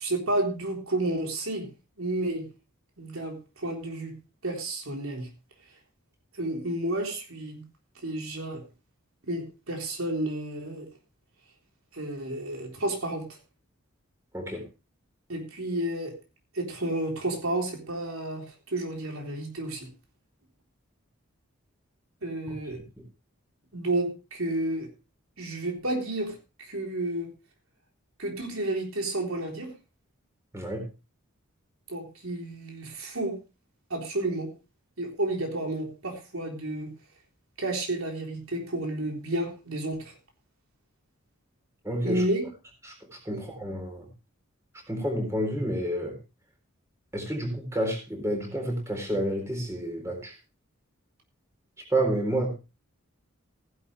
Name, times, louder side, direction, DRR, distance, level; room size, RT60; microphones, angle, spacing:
voice 1, 0.0-1.7 2.0-2.5 3.0-4.1 4.4-5.3 6.3-7.6 8.0-8.6 9.2-10.9 11.9-13.4 15.3-16.1 16.5-19.9 22.2-22.8 23.7-24.9 25.4-27.3 28.2-29.7 31.9-33.4 33.9-34.5 35.0-36.9 37.6-40.1 42.0-42.4 43.3-43.4, right 1 dB, 80° right, 2 dB, 3.8 m, -31 dB
voice 2, 30.5-30.8 41.8-42.2 42.8-44.1 44.9-46.2 47.1-50.3 51.9-52.5, right 1 dB, 15° right, 3 dB, 3.9 m, -29 dB
15.5 x 11.0 x 3.4 m, 0.31 s
head